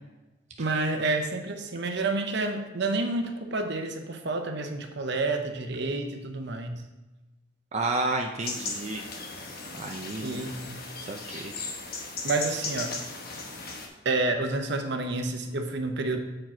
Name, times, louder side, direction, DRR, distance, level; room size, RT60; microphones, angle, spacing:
voice 1, 0.6-6.8 10.2-10.8 12.2-12.9 14.0-16.2, right 2 dB, 65° right, 5 dB, 0.8 m, -29 dB
voice 2, 7.7-9.0 9.7-10.4 11.0-11.5, right 2 dB, 35° right, 2 dB, 0.5 m, -31 dB
sound 1, 8.4-13.9, left 3 dB, 55° left, 1.0 m, -37 dB
7.6 x 4.8 x 4.4 m, 1.1 s
head